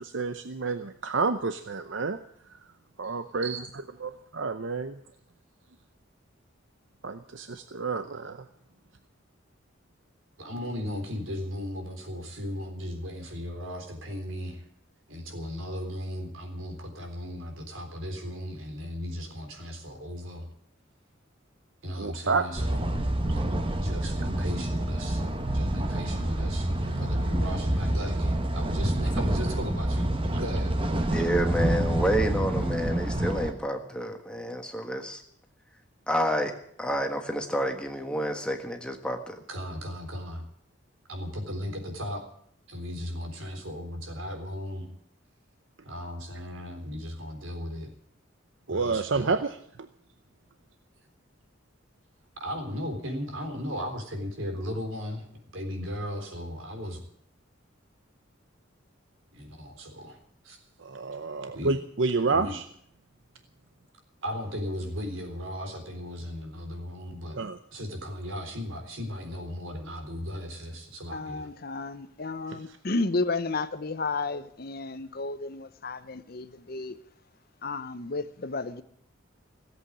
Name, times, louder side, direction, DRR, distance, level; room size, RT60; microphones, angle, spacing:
voice 1, 0.0-2.2 2.5-2.7 3.0-5.0 7.0-8.5 22.0-22.5 23.3-23.4 24.0-24.1 48.7-49.9 60.8-62.6 67.4-67.6 72.5-72.6, right 4 dB, 70° right, 0.7 m, -30 dB
voice 2, 10.4-14.6 15.1-20.5 21.8-22.9 23.8-25.2 25.5-30.7 39.5-40.5 41.1-42.3 42.7-44.9 45.8-47.9 48.7-49.3 52.4-55.3 55.5-57.0 59.3-60.2 60.4-60.6 61.5-61.7 62.3-62.6 64.2-67.4 67.7-71.5, equal, 90° right, 3.8 m, -36 dB
sound 1, 22.5-33.5, right 1 dB, 25° right, 1.2 m, -27 dB
voice 3, 31.1-35.2 36.1-36.5 36.8-39.4, equal, 5° left, 1.5 m, -29 dB
voice 4, 71.1-77.0 77.6-78.8, left 3 dB, 50° left, 0.8 m, -32 dB
17.0 x 8.2 x 9.9 m
head